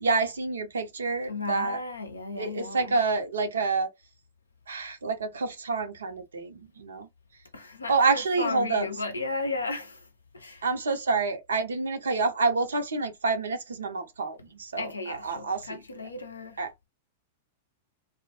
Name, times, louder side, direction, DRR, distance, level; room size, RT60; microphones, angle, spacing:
voice 1, 0.0-1.8 2.4-3.9 4.7-7.1 7.9-8.8 10.6-15.8 16.6-16.7, right 4 dB, 75° right, 0.5 m, -28 dB
voice 2, 1.3-3.0 7.5-10.0 10.3-10.6 14.8-16.6, left 3 dB, 85° left, 0.5 m, -34 dB
2.1 x 2.0 x 2.8 m
figure-of-eight pair, 100°, 0 cm